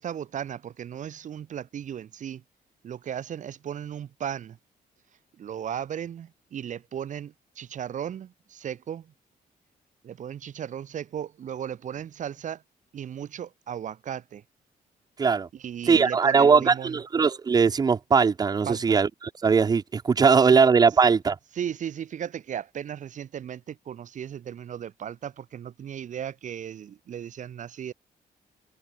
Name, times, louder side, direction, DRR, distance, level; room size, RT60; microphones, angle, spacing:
voice 1, 0.0-2.4 2.8-4.6 5.4-9.1 10.0-12.6 12.9-14.4 15.6-16.9 18.7-19.0 20.5-20.6 21.6-27.9, right 9 dB, 50° right, 0.8 m, -36 dB
voice 2, 15.9-21.4, right 5 dB, 25° right, 0.4 m, -20 dB
cardioid pair, 130°, 16 cm